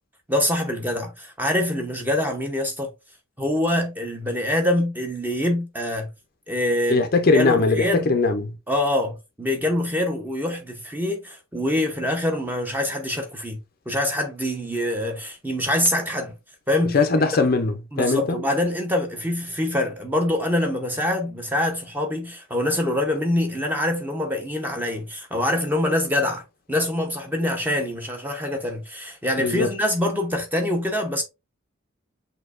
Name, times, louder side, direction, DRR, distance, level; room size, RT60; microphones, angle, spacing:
voice 1, 0.3-2.9 3.4-6.1 6.5-7.1 7.3-8.1 8.7-13.6 13.9-16.3 16.7-17.0 17.9-31.2, left 1 dB, 10° right, 0.7 m, -25 dB
voice 2, 6.9-8.6 16.9-18.4 29.4-29.7, left 3 dB, 45° left, 0.5 m, -20 dB
6.3 x 2.7 x 2.4 m
head